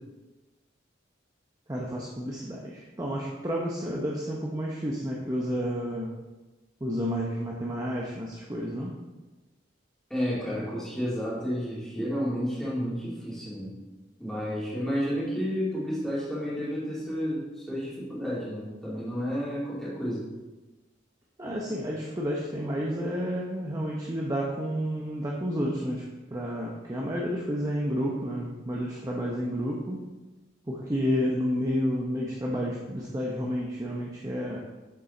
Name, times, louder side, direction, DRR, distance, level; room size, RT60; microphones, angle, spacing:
voice 1, 1.7-6.2 6.8-9.0 21.4-30.1 30.7-34.6, equal, 20° right, -3 dB, 0.8 m, -30 dB
voice 2, 10.1-13.7 14.2-20.2, equal, ahead, -8 dB, 2.6 m, -31 dB
8.4 x 7.4 x 3.8 m, 1.2 s
head